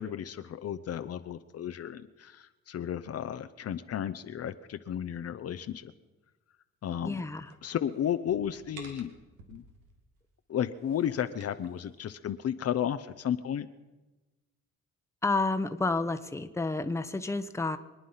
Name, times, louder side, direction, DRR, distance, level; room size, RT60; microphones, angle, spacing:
voice 1, 0.0-5.9 6.8-7.2 7.6-9.1 9.5-9.6 10.5-13.7, left 9 dB, 55° left, 10 dB, 0.8 m, -33 dB
voice 2, 7.0-7.5 15.2-17.8, left 3 dB, 10° left, 9 dB, 1.0 m, -30 dB
sound 1, 7.5-9.9 10.6-11.7, right 3 dB, 90° right, 2.6 m, -52 dB
25.0 x 9.6 x 5.7 m, 1.1 s
cardioid pair, 90°, 30 cm